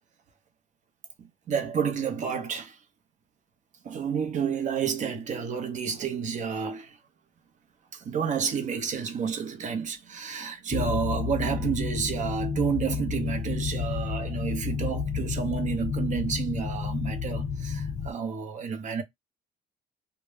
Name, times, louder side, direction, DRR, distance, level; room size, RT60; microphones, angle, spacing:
voice 1, 1.2-2.8 3.8-7.0 7.9-19.0, right 6 dB, 45° right, 0.7 m, -30 dB
sound 1, 10.7-18.1, left 6 dB, 40° left, 0.4 m, -31 dB
2.1 x 2.1 x 3.3 m
cardioid pair, 110°, 17 cm